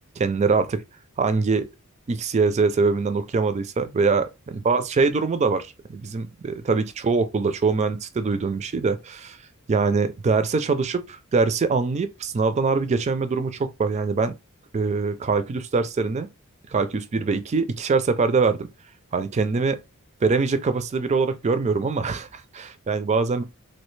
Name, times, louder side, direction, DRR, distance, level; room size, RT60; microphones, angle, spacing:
voice 1, 0.2-0.8 1.2-1.7 2.1-4.3 4.7-9.4 9.7-14.3 14.7-16.3 16.7-18.7 19.1-19.8 20.2-23.4, right 4 dB, 30° right, 0.4 m, -23 dB
3.2 x 2.3 x 3.1 m
head